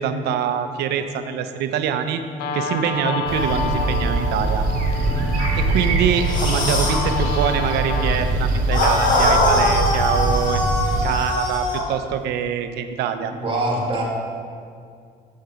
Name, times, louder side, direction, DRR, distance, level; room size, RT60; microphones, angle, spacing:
voice 1, 0.0-2.2 2.5-4.7 5.6-10.6 11.0-13.3, right 8 dB, 80° right, 9 dB, 0.6 m, -24 dB
Guitar, 2.4-9.4, left 3 dB, 70° left, 0.7 m, -30 dB
sound 1, 3.3-11.0, right 2 dB, 60° right, 1.7 m, -22 dB
sound 2, 6.2-7.1 8.7-11.9, left 1 dB, 50° left, 1.6 m, -21 dB
voice 2, 13.3-14.0, right 2 dB, 30° right, -3 dB, 1.9 m, -24 dB
7.0 x 6.5 x 5.0 m, 2.3 s
cardioid pair, 110°, 17 cm